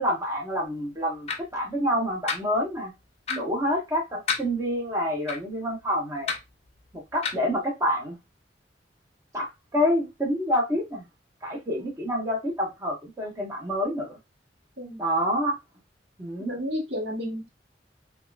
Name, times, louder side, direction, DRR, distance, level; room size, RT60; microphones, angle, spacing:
voice 1, 0.0-2.9 3.4-6.3 7.1-8.2 9.3-11.1 11.4-14.2 15.0-15.6 16.2-16.5, equal, 20° right, 0.9 m, -27 dB
sound 1, 1.3-1.4 2.3-2.4 3.3-3.4 4.3-4.4 5.3-5.4 6.3-6.4 7.2-7.4, left 5 dB, 35° left, 0.5 m, -28 dB
voice 2, 16.4-17.5, equal, 70° right, 1.1 m, -32 dB
3.5 x 2.4 x 2.3 m
head